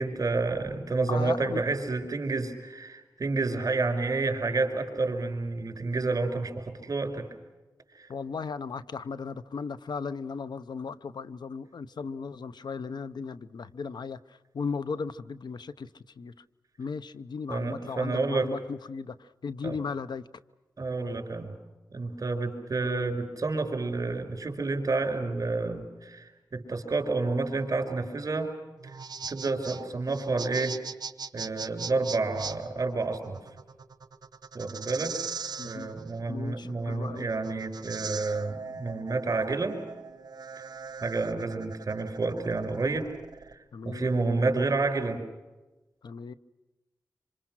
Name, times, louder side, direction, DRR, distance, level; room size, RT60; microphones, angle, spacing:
voice 1, 0.0-7.3 8.0-8.1 17.5-18.5 19.6-19.8 20.8-21.6 21.9-28.5 29.3-30.8 31.3-33.4 34.5-35.2 35.6-39.8 41.0-43.1 43.8-45.2, right 3 dB, 50° right, 5 dB, 5.2 m, -29 dB
voice 2, 1.1-1.6 8.1-14.2 14.5-15.9 16.2-16.3 16.8-20.2 35.6-35.9 36.3-37.3 43.7-44.1 46.0-46.3, left 5 dB, 80° left, 14 dB, 0.8 m, -36 dB
sound 1, 28.8-43.5, right 5 dB, 65° right, 1.3 m, -40 dB
26.5 x 26.5 x 6.2 m, 1.1 s
wide cardioid pair, 80°, 7 cm